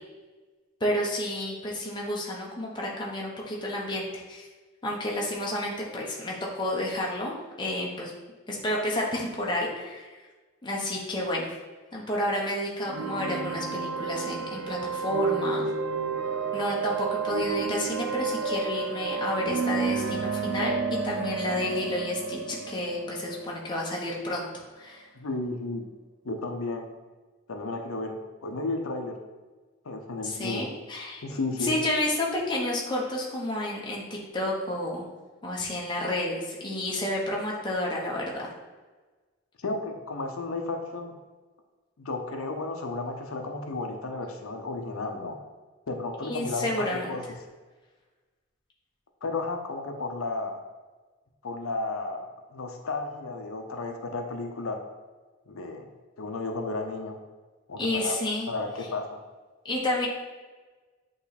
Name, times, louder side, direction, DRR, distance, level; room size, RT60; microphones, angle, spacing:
voice 1, 0.8-4.5 4.8-8.1 8.5-10.1 10.6-11.5 11.9-15.7 16.5-25.1 30.2-35.1 35.4-38.5 46.2-47.2 57.8-58.5 59.6-60.1, left 1 dB, 20° left, -3 dB, 1.0 m, -30 dB
sound 1, 12.9-24.5, right 5 dB, 65° right, 0.5 m, -31 dB
voice 2, 25.1-25.8 26.2-26.9 27.5-29.2 29.8-30.7 31.2-31.7 39.6-41.1 42.0-45.4 45.9-47.3 49.2-50.6 51.4-54.8 55.5-55.9 56.2-57.2 57.7-58.2 58.5-59.2, left 3 dB, 90° left, 4 dB, 0.7 m, -33 dB
8.1 x 3.2 x 4.1 m, 1.3 s
head